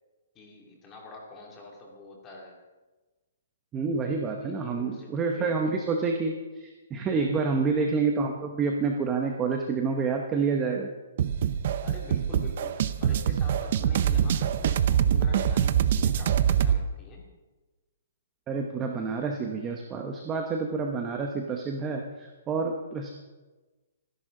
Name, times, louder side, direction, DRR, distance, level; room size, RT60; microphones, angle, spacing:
voice 1, 0.3-2.6 4.3-5.8 7.1-7.6 11.8-17.3, left 2 dB, 15° left, -1 dB, 2.4 m, -46 dB
voice 2, 3.7-10.9 18.5-23.1, right 4 dB, 10° right, 2 dB, 0.9 m, -28 dB
sound 1, 11.2-16.8, right 9 dB, 40° right, 0.6 m, -24 dB
25.5 x 11.0 x 3.8 m, 1.2 s
hypercardioid pair, 175°, 0 cm